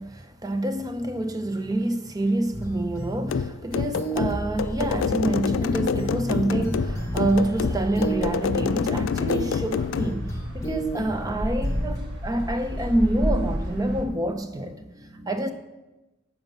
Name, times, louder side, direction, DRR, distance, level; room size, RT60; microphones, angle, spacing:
voice 1, 0.0-15.5, right 1 dB, 20° right, 8 dB, 0.7 m, -27 dB
sound 1, 2.5-3.3 3.9-5.3 5.6-8.3 9.3-9.6 9.9-11.3 11.6-12.0, right 1 dB, 15° left, 1.2 m, -32 dB
sound 2, 3.3-10.1, left 6 dB, 85° left, 0.3 m, -27 dB
sound 3, 6.7-14.0, equal, 60° right, 1.6 m, -32 dB
9.4 x 7.1 x 5.5 m, 1.0 s
head